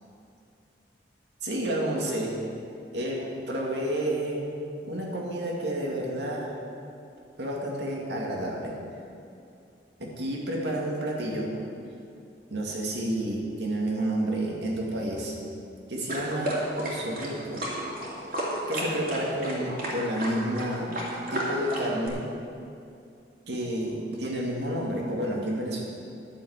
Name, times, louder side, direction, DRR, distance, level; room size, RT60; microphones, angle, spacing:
voice 1, 1.4-2.4 2.9-4.5 4.8-6.6 7.4-8.7 10.0-11.5 12.5-15.3 15.9-17.7 18.7-21.0 21.3-22.2 23.5-25.8, right 1 dB, 85° right, -2 dB, 2.4 m, -30 dB
sound 1, 16.1-22.1, right 1 dB, 55° right, 2.8 m, -32 dB
11.5 x 7.2 x 8.2 m, 2.5 s
head